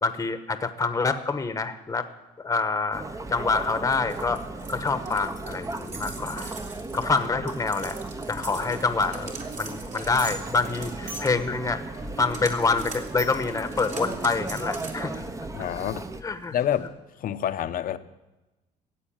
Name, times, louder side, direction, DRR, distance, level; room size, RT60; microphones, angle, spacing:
voice 1, 0.0-2.0 2.4-4.4 4.7-6.5 6.9-8.0 8.3-11.8 12.2-15.2 16.2-16.5, left 4 dB, 20° left, 9 dB, 1.1 m, -26 dB
Chatter, 2.9-16.2, right 2 dB, 20° right, 0.9 m, -36 dB
sound 1, 3.6-16.9, right 4 dB, 45° right, 2.8 m, -43 dB
sound 2, 10.0-15.8, right 2 dB, 80° right, 6.2 m, -45 dB
voice 2, 15.5-16.1 16.5-16.9 17.2-18.0, left 10 dB, 55° left, 11 dB, 0.9 m, -27 dB
15.0 x 8.5 x 8.7 m, 1.0 s
cardioid pair, 110°, 17 cm